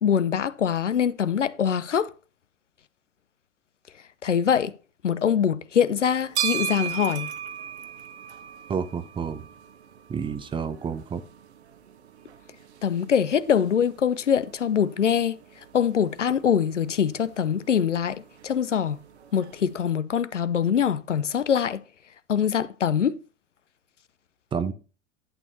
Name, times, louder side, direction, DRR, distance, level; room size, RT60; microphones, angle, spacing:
voice 1, 0.0-2.1 4.2-4.7 5.0-7.3 12.8-15.4 15.7-19.0 19.3-21.8 22.3-23.2, left 8 dB, 80° left, 0.7 m, -23 dB
sound 1, 6.0-19.8, right 9 dB, 65° right, 1.2 m, -38 dB
voice 2, 8.7-9.4 10.1-11.2 24.5-24.7, right 6 dB, 15° right, 0.7 m, -29 dB
11.0 x 8.9 x 2.7 m
figure-of-eight pair, 90°, 36 cm